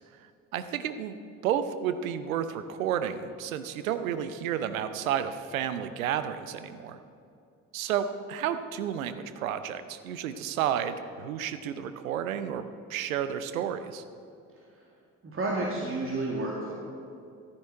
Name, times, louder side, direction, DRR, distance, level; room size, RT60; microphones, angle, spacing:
voice 1, 0.5-1.2 1.4-7.0 7.7-14.0, right 9 dB, 75° right, 11 dB, 0.7 m, -31 dB
voice 2, 14.6-14.9 15.2-16.7, right 2 dB, 30° right, -2 dB, 2.1 m, -31 dB
14.5 x 10.5 x 4.6 m, 2.5 s
figure-of-eight pair, 45°, 41 cm